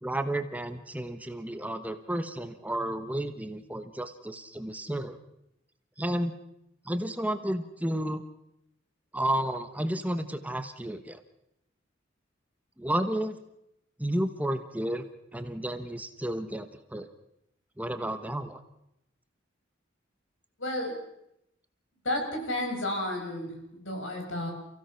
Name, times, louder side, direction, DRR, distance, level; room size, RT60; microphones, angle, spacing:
voice 1, 0.0-5.2 6.0-6.4 6.8-8.2 9.1-11.2 12.8-13.4 14.0-17.1 17.8-18.6, right 1 dB, 10° right, 9 dB, 1.2 m, -32 dB
voice 2, 20.6-21.0 22.0-24.5, left 1 dB, 80° left, 2 dB, 6.4 m, -32 dB
29.0 x 16.5 x 5.8 m, 0.80 s
head